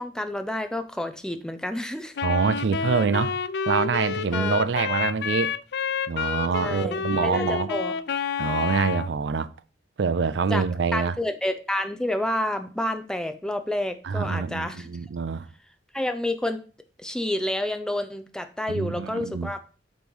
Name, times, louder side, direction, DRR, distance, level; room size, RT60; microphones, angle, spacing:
voice 1, 0.0-2.1 4.3-4.6 6.6-7.9 10.5-10.7 10.9-14.9 15.9-16.6 17.0-19.7, left 1 dB, 5° left, 0.5 m, -29 dB
Wind instrument woodwind instrument, 2.1-9.1, left 6 dB, 60° left, 0.3 m, -29 dB
voice 2, 2.2-3.4 3.7-5.5 6.1-7.7 8.4-9.5 10.0-11.1 14.0-15.5 18.7-19.5, right 5 dB, 70° right, 0.4 m, -25 dB
8.1 x 3.1 x 5.3 m
head